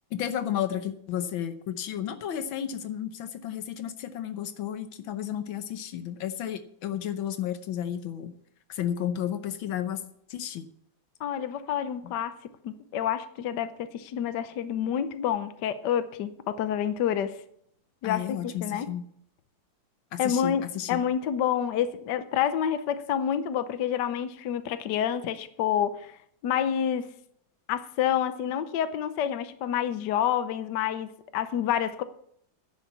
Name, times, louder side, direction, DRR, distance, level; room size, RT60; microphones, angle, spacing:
voice 1, 0.1-8.3 8.7-10.0 10.3-10.7 12.0-12.1 18.0-19.1 20.1-21.0, left 10 dB, 85° left, 1.7 m, -32 dB
voice 2, 11.2-12.3 12.6-17.3 18.0-18.9 20.2-26.1 26.4-27.1 27.7-32.0, left 9 dB, 65° left, 1.4 m, -28 dB
10.5 x 7.4 x 8.2 m
omnidirectional pair, 2.1 m